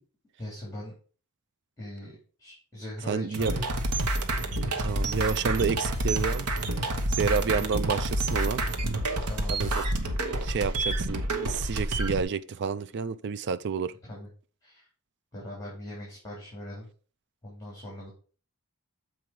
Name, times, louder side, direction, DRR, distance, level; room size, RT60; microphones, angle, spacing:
voice 1, 0.4-0.9 1.8-3.8 4.7-4.9 6.9-7.2 9.3-9.8 14.1-14.3 14.6-14.9 15.3-16.9 17.4-18.1, left 1 dB, 15° left, 3.1 m, -41 dB
voice 2, 3.1-3.6 4.8-6.5 7.1-8.6 9.5-9.8 10.4-13.9, right 5 dB, 55° right, 0.4 m, -30 dB
sound 1, 3.3-12.2, right 1 dB, 85° right, 1.1 m, -28 dB
7.6 x 4.7 x 4.8 m
head